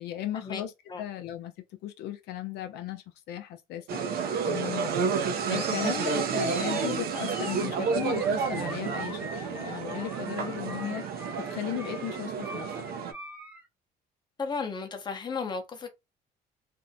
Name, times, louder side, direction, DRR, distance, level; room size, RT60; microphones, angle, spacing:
voice 1, 0.0-1.5 1.8-4.9 5.5-13.0, left 12 dB, 75° left, 0.5 m, -36 dB
sound 1, 3.9-13.1, right 6 dB, 65° right, 0.5 m, -30 dB
Animal, 5.5-13.6, right 1 dB, 10° right, 0.7 m, -41 dB
voice 2, 14.4-15.9, left 5 dB, 25° left, 0.7 m, -34 dB
2.5 x 2.1 x 2.6 m
cardioid pair, 110°, 17 cm